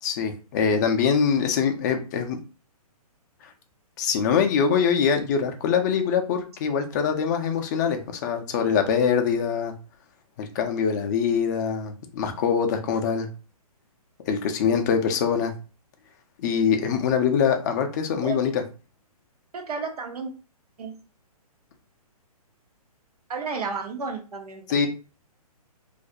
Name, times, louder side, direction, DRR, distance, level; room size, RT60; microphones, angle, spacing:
voice 1, 0.0-2.4 4.0-9.7 10.4-13.3 14.3-15.5 16.4-18.6 24.7-24.9, left 6 dB, 30° left, 6 dB, 0.4 m, -23 dB
voice 2, 19.5-20.3 20.8-21.0 23.3-24.9, right 4 dB, 75° right, 4 dB, 0.7 m, -32 dB
2.3 x 2.0 x 2.6 m, 0.34 s
hypercardioid pair, 135°, 20 cm